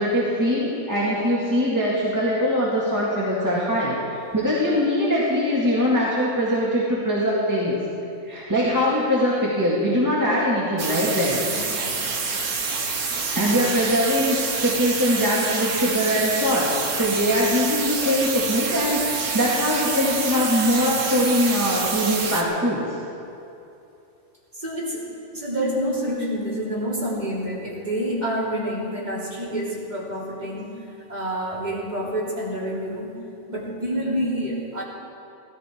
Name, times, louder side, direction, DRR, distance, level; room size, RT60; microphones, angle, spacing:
voice 1, 0.0-4.0 4.3-7.8 8.2-11.4 13.4-22.8, equal, 10° right, -7 dB, 2.0 m, -22 dB
sound 1, 10.8-22.4, right 4 dB, 80° right, 1.8 m, -27 dB
voice 2, 11.5-11.8 24.5-25.0 25.3-30.7 31.1-33.1 33.5-34.8, equal, 30° right, -6 dB, 3.4 m, -28 dB
16.5 x 14.0 x 4.6 m, 2.7 s
omnidirectional pair, 1.5 m